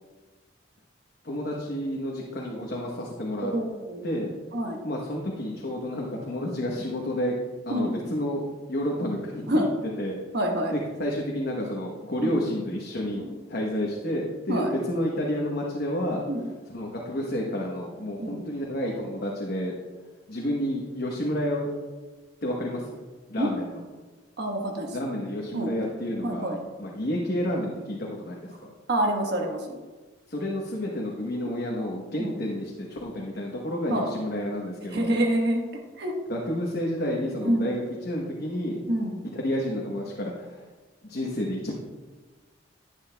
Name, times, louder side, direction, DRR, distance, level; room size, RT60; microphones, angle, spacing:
voice 1, 1.2-3.5 4.0-4.3 4.8-7.3 7.7-9.7 10.0-10.2 10.7-13.2 13.5-16.2 16.7-19.7 20.3-21.7 22.4-23.0 23.3-23.8 24.9-28.6 30.3-35.1 36.3-38.8 39.3-40.6 41.1-41.7, equal, 55° left, -2 dB, 1.1 m, -30 dB
voice 2, 3.4-4.0 4.5-4.8 7.7-7.9 9.5-9.7 10.3-10.7 12.2-12.4 13.2-13.3 14.5-14.7 16.3-16.5 18.2-18.5 23.4-23.5 24.4-25.0 25.5-25.7 26.2-26.6 28.9-29.8 32.2-32.3 33.9-34.1 34.9-35.6 36.0-36.2 37.4-37.6 38.9-39.2, right 1 dB, 60° right, 1 dB, 1.3 m, -27 dB
11.0 x 9.2 x 2.3 m, 1.3 s
head